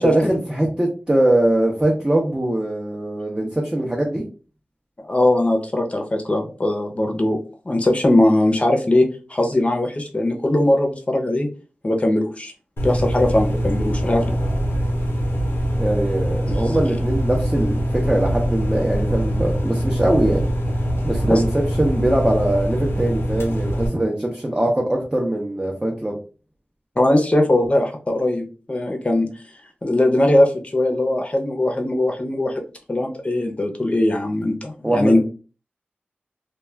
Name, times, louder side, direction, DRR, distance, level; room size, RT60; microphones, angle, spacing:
voice 1, 0.0-4.2 15.8-20.5 21.0-26.2 34.8-35.2, right 1 dB, 15° right, -1 dB, 0.6 m, -21 dB
voice 2, 5.0-7.4 7.7-11.5 11.8-12.5 12.8-14.2 21.3-21.4 27.0-29.3 29.8-32.6 32.9-35.2, left 1 dB, 30° left, 2 dB, 0.6 m, -20 dB
sound 1, 12.8-23.9, equal, 85° left, 0.7 m, -23 dB
2.3 x 2.2 x 3.2 m, 0.36 s
wide cardioid pair, 70°, 4 cm